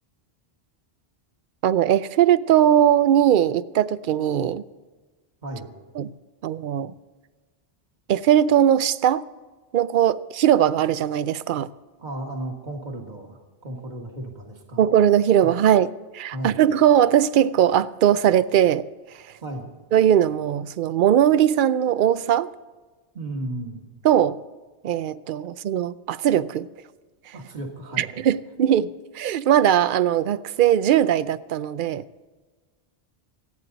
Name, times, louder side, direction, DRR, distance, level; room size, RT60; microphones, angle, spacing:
voice 1, 1.6-4.6 6.0-6.1 6.4-6.9 8.1-9.2 9.7-11.7 14.8-18.8 19.9-22.5 24.0-24.4 24.8-26.7 28.0-32.0, right 10 dB, 60° right, 0.6 m, -20 dB
voice 2, 12.0-14.8 15.4-15.5 16.3-16.6 19.4-19.7 23.1-23.8 27.3-28.2, right 1 dB, 45° right, 2.0 m, -34 dB
27.5 x 9.2 x 4.0 m
omnidirectional pair, 1.1 m